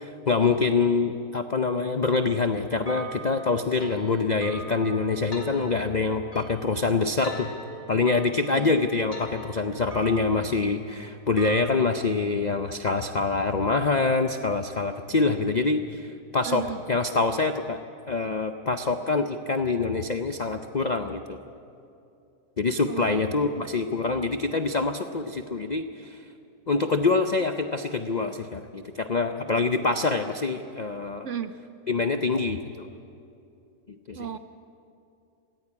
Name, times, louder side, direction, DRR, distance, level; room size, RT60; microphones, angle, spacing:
voice 1, 0.0-7.5 7.9-17.8 18.1-21.4 22.6-26.2 26.7-31.3 31.9-32.9 33.9-34.3, left 4 dB, 65° left, 7 dB, 0.4 m, -25 dB
sound 1, 2.9-11.8, right 1 dB, 35° left, 3.9 m, -42 dB
voice 2, 16.4-16.8 22.8-23.2 31.2-31.5 34.1-34.4, right 8 dB, 60° right, 10 dB, 0.8 m, -34 dB
17.5 x 16.5 x 9.7 m, 2.7 s
omnidirectional pair, 1.8 m